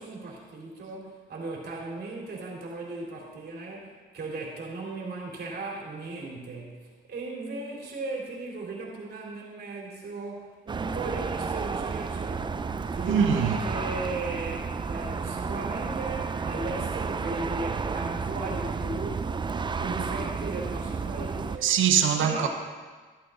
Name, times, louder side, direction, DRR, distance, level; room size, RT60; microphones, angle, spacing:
voice 1, 0.0-12.6 12.9-21.7 22.2-22.5, right 3 dB, 55° right, -3 dB, 3.7 m, -37 dB
sound 1, 10.7-21.6, right 5 dB, 25° right, 0.5 m, -32 dB
voice 2, 13.1-13.6 21.6-22.5, right 8 dB, 80° right, 6 dB, 1.1 m, -22 dB
14.0 x 8.5 x 3.9 m, 1.4 s
cardioid pair, 90°, 20 cm